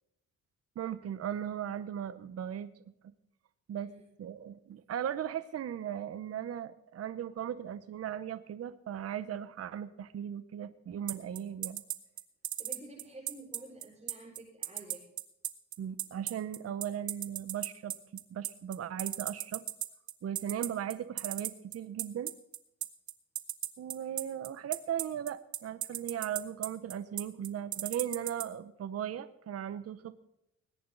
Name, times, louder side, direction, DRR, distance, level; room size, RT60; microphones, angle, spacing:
voice 1, 0.8-2.7 3.7-3.9 4.2-11.8 15.8-19.6 20.2-22.3 23.8-30.2, right 9 dB, 50° right, 14 dB, 0.9 m, -37 dB
sound 1, 11.1-28.4, right 12 dB, 70° right, 1.1 m, -35 dB
voice 2, 12.6-15.0, right 2 dB, 20° right, -4 dB, 5.4 m, -50 dB
20.0 x 10.0 x 3.9 m, 0.81 s
cardioid pair, 90°, 30 cm